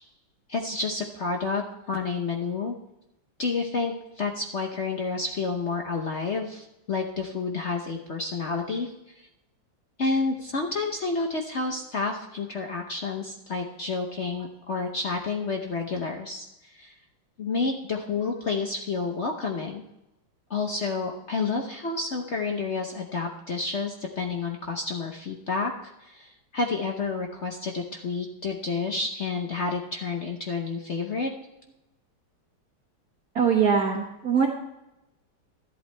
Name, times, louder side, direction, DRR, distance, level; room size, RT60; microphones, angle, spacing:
voice 1, 0.5-2.7 3.4-9.3 10.0-16.9 17.4-19.8 20.5-31.3, left 4 dB, 50° left, 2 dB, 0.9 m, -30 dB
voice 2, 33.3-34.5, right 6 dB, 55° right, 0 dB, 1.6 m, -22 dB
13.0 x 11.0 x 3.3 m, 0.91 s
omnidirectional pair, 2.1 m